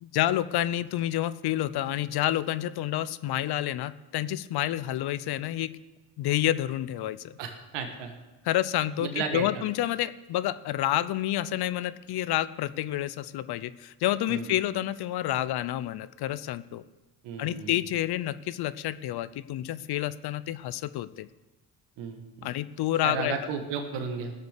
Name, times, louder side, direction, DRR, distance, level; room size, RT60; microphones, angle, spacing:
voice 1, 0.0-5.8 6.2-7.4 8.4-16.8 17.4-21.3 22.4-23.3, left 13 dB, 60° left, 15 dB, 0.7 m, -29 dB
voice 2, 7.4-8.1 9.0-9.6 14.3-14.5 17.2-17.7 22.0-22.5 23.0-24.3, right 5 dB, 75° right, 5 dB, 1.7 m, -34 dB
17.5 x 6.7 x 6.6 m, 1.1 s
supercardioid pair, 65°, 43 cm